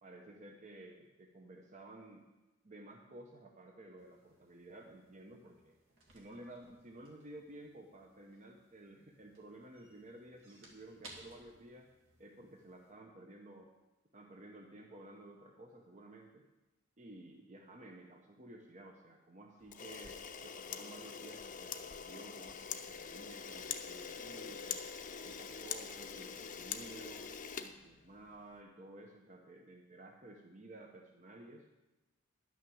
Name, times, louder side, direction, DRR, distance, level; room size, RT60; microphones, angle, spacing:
voice 1, 0.0-2.3 2.6-5.8 6.1-11.9 12.2-13.7 14.1-16.4 17.0-24.8 25.2-27.3 27.6-31.7, right 1 dB, 35° right, 2 dB, 0.8 m, -54 dB
sound 1, 4.0-12.9, right 2 dB, 65° right, 2.2 m, -62 dB
Camera, 19.7-28.4, left 7 dB, 40° left, 0.7 m, -44 dB
11.0 x 6.2 x 7.0 m, 1.0 s
head